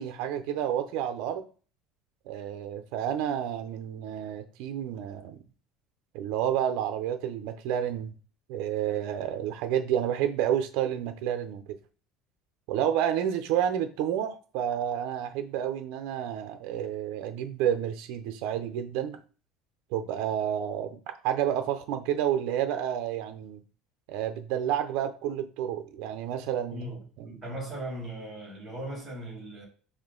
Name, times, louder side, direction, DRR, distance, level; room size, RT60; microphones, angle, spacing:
voice 1, 0.0-1.4 2.3-5.4 6.1-8.1 8.5-11.6 12.7-19.2 19.9-23.6 24.1-26.8, right 10 dB, 60° right, 0.5 m, -30 dB
voice 2, 26.7-29.7, right 1 dB, 5° right, 1.8 m, -38 dB
4.4 x 2.8 x 3.8 m
cardioid pair, 175°, 0 cm